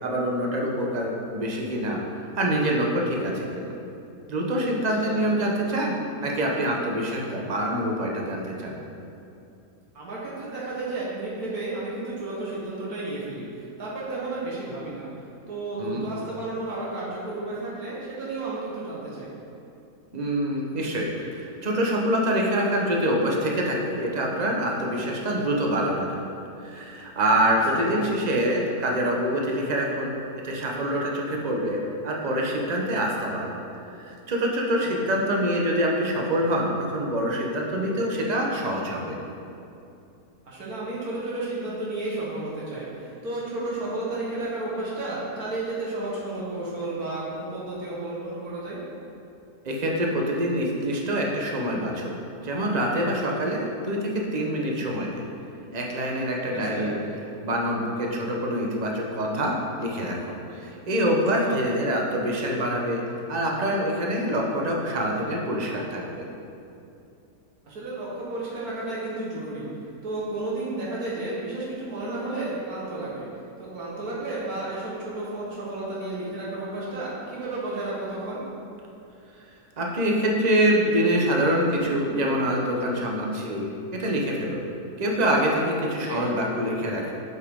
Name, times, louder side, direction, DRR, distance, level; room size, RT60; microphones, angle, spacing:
voice 1, 0.0-2.0 2.3-3.7 4.3-8.8 15.8-16.0 20.1-26.2 26.6-30.2 30.4-31.8 32.0-33.5 33.9-39.2 49.6-52.2 52.4-55.3 55.7-57.0 57.4-63.0 63.3-66.3 79.8-84.6 85.0-87.1, equal, 30° right, -1 dB, 0.9 m, -25 dB
voice 2, 5.0-5.3 9.9-15.1 15.5-19.3 27.8-28.1 34.8-35.1 40.5-48.8 56.5-56.9 61.4-61.6 67.7-69.7 70.0-73.3 73.6-78.5 86.0-86.3, right 2 dB, 75° right, -6 dB, 1.8 m, -32 dB
7.9 x 7.3 x 3.7 m, 2.7 s
omnidirectional pair, 1.6 m